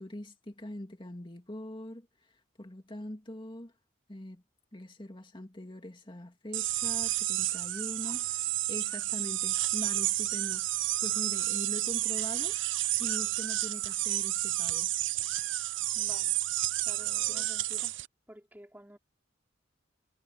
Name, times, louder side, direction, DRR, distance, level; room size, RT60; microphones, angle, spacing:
voice 1, 0.0-3.7 4.1-4.4 4.7-12.6 13.0-14.9, left 1 dB, 25° left, 2.3 m, -43 dB
sound 1, 6.5-18.1, right 16 dB, 80° right, 0.6 m, -31 dB
voice 2, 15.9-16.4 16.8-17.9 18.3-19.0, equal, 10° right, 4.9 m, -51 dB
head